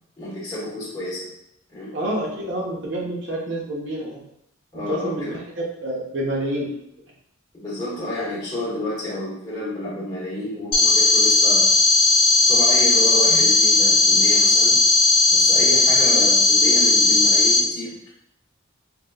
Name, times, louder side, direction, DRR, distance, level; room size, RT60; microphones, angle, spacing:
voice 1, 0.2-1.3 1.7-1.9 4.7-5.3 7.5-11.7 12.5-14.9 15.3-18.1, left 1 dB, 20° left, -9 dB, 1.0 m, -30 dB
voice 2, 1.9-4.2 4.7-6.7, right 1 dB, 55° right, -3 dB, 0.9 m, -28 dB
sound 1, 10.7-17.6, left 2 dB, 45° left, 1.0 m, -16 dB
3.8 x 2.9 x 2.2 m, 0.76 s
head